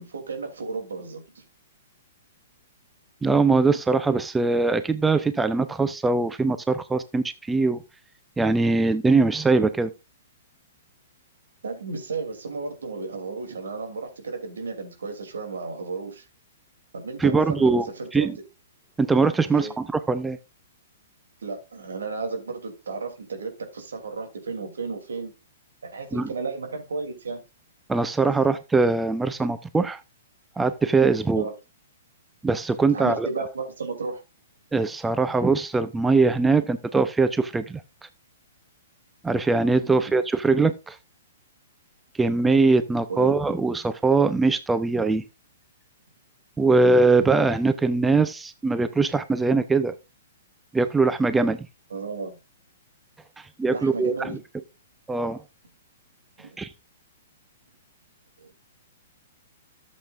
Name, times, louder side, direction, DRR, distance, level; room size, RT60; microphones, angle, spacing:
voice 1, 0.0-1.4 11.6-16.2 16.9-18.3 19.5-19.7 21.4-25.3 25.8-27.4 31.4-31.5 32.9-34.2 43.1-43.4 51.9-52.4 53.7-54.4 56.4-56.6 58.4-58.5, right 4 dB, 80° right, 2.9 m, -33 dB
voice 2, 3.2-7.8 8.4-9.9 17.2-17.9 18.1-18.4 19.0-20.4 26.1-26.3 27.9-30.0 30.6-31.5 32.4-33.3 34.7-37.8 39.2-41.0 42.2-45.2 46.6-49.9 50.7-51.7 53.6-54.4 55.1-55.4 56.6-56.7, right 3 dB, 10° right, 0.6 m, -22 dB
13.0 x 7.5 x 2.5 m
hypercardioid pair, 125°, 0 cm